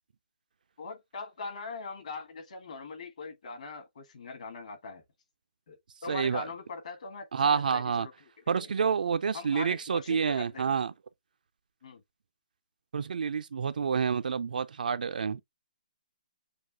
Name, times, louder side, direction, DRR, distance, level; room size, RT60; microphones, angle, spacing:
voice 1, 0.8-5.0 5.7-5.8 6.0-8.1 8.5-8.7 9.3-10.7 11.8-12.0, left 4 dB, 50° left, 1.4 m, -41 dB
voice 2, 6.1-6.5 7.3-8.1 8.5-10.9 12.9-15.4, right 6 dB, 65° right, 0.4 m, -28 dB
6.5 x 2.3 x 2.7 m
hypercardioid pair, 170°, 5 cm